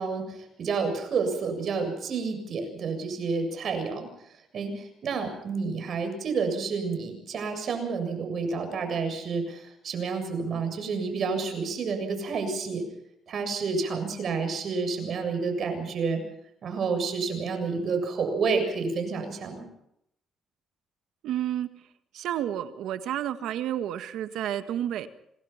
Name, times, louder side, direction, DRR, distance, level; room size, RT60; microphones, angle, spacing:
voice 1, 0.0-4.1 4.5-12.8 13.3-16.2 16.6-19.7, right 4 dB, 60° right, 6 dB, 7.3 m, -29 dB
voice 2, 21.2-21.7 22.1-25.1, right 11 dB, 85° right, 10 dB, 1.7 m, -30 dB
27.0 x 20.0 x 5.9 m, 0.76 s
cardioid pair, 90°, 0 cm